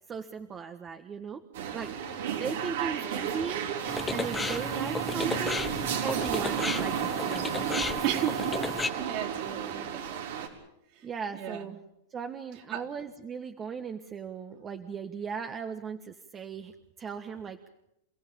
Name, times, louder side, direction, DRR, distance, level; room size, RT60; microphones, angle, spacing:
voice 1, 0.1-1.4 1.7-3.6 4.1-5.7 6.0-7.5 7.9-8.2 11.0-11.8 12.1-16.7 17.0-17.6, right 6 dB, 25° right, 7 dB, 1.4 m, -37 dB
sound 1, 1.5-10.5, right 8 dB, 75° right, 4.3 m, -32 dB
sound 2, 3.9-8.9, left 4 dB, 10° left, 1.0 m, -34 dB
voice 2, 8.0-8.6 9.0-10.2 11.0-11.1 11.3-11.7 12.7-12.8, right 11 dB, 50° right, -1 dB, 4.1 m, -34 dB
29.0 x 16.0 x 8.6 m, 0.81 s
hypercardioid pair, 125°, 0 cm